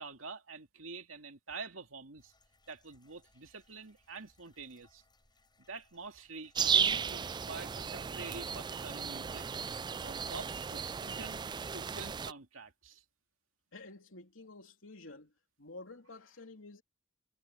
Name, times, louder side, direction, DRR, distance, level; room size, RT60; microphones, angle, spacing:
voice 1, 0.0-2.3 2.7-5.0 5.7-9.5 10.0-11.4 11.7-13.0, right 4 dB, 80° right, 2.6 m, -47 dB
sound 1, 2.2-7.2, left 2 dB, 20° left, 6.7 m, -69 dB
sound 2, 6.6-12.3, right 6 dB, 20° right, 0.3 m, -34 dB
voice 2, 13.7-15.3 15.6-16.8, left 2 dB, 70° left, 3.4 m, -50 dB
head